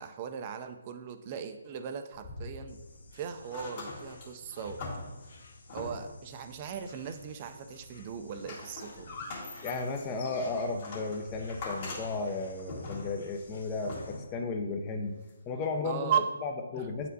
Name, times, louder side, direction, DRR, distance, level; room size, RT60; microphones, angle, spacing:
voice 1, 0.0-2.8 3.1-4.8 5.7-9.2 15.8-16.3 16.8-16.9, right 7 dB, 30° right, 8 dB, 0.5 m, -37 dB
sound 1, 2.1-3.1 3.4-6.3 6.9-7.6 8.0-14.4 15.3-15.4, left 2 dB, 40° left, 1.8 m, -43 dB
Insect, 2.7-14.2, left 2 dB, 65° left, 1.0 m, -55 dB
voice 2, 9.6-15.2 15.5-17.1, left 3 dB, 20° left, 3 dB, 0.7 m, -34 dB
8.8 x 4.3 x 2.7 m, 1.1 s
figure-of-eight pair, 145°, 0 cm